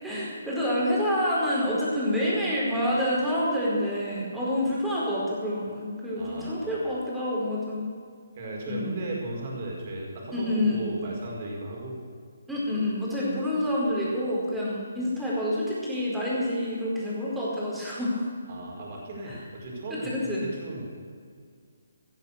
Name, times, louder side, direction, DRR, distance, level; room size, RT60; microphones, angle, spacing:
voice 1, 0.0-7.8 8.7-8.9 10.3-10.8 12.5-18.3 19.3-19.4 19.9-20.4, left 1 dB, 5° right, -7 dB, 4.8 m, -27 dB
voice 2, 6.1-6.7 8.4-12.0 18.5-20.8, right 2 dB, 40° right, -2 dB, 4.8 m, -36 dB
16.5 x 10.5 x 6.9 m, 2.1 s
figure-of-eight pair, 150°, 0 cm